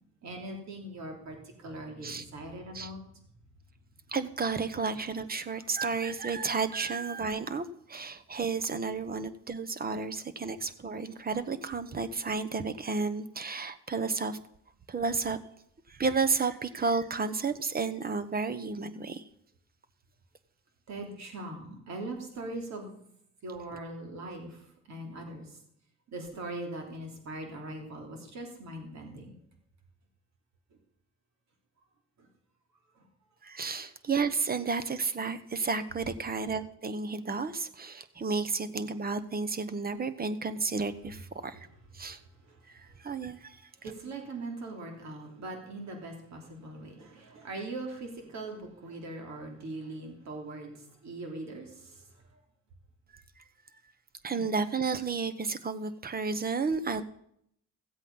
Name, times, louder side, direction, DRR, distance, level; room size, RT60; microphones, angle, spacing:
voice 1, 0.2-1.4 1.6-3.0 20.9-22.9 23.4-24.6 24.9-25.5 26.1-29.3 43.8-50.7 51.0-51.7 54.3-54.4, right 2 dB, 65° right, 2 dB, 3.3 m, -40 dB
voice 2, 4.1-14.4 14.9-15.4 15.9-19.2 23.7-23.8 33.4-41.7 41.9-42.2 42.7-43.9 53.1-53.2 54.2-57.0, right 4 dB, 30° right, 11 dB, 1.1 m, -32 dB
15.0 x 8.2 x 5.5 m, 0.71 s
cardioid pair, 90°, 30 cm